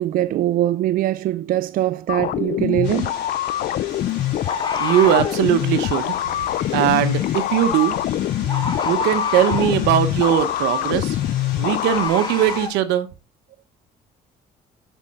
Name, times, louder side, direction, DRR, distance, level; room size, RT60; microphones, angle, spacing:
voice 1, 0.0-3.2 8.4-8.6, right 13 dB, 55° right, 0.4 m, -22 dB
sound 1, 2.1-12.1, left 13 dB, 55° left, 0.4 m, -24 dB
Bird, 2.7-2.9 4.5-5.4 7.7-7.9 8.5-9.8 11.9-12.7, left 3 dB, 25° left, 1.5 m, -28 dB
sound 2, 2.8-12.7, left 5 dB, 85° left, 3.9 m, -38 dB
voice 2, 4.8-6.5 6.7-8.0 8.8-11.2 11.6-13.1, right 11 dB, 90° right, 0.9 m, -20 dB
8.2 x 5.5 x 3.6 m
cardioid pair, 110°, 17 cm